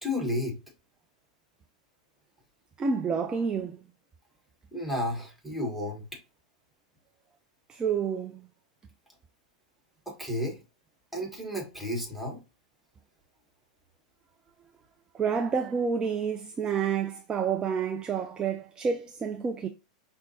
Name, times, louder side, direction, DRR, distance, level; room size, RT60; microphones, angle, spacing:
voice 1, 0.0-0.6 4.7-6.0 10.1-10.6 11.1-12.4, left 1 dB, ahead, 1.5 m, -32 dB
voice 2, 2.8-3.8 7.7-8.4 15.1-19.7, right 6 dB, 20° right, 0.4 m, -29 dB
5.6 x 2.2 x 2.7 m
hypercardioid pair, 105°, 4 cm